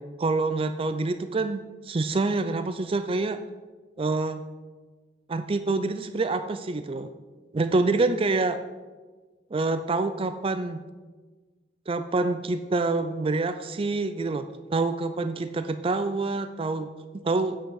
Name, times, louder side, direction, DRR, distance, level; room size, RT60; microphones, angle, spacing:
voice 1, 0.2-3.4 4.0-4.4 5.3-7.1 7.5-8.6 9.5-10.8 11.9-16.9 17.1-17.6, right 3 dB, 30° right, 10 dB, 0.4 m, -26 dB
9.3 x 5.6 x 8.0 m, 1.3 s
head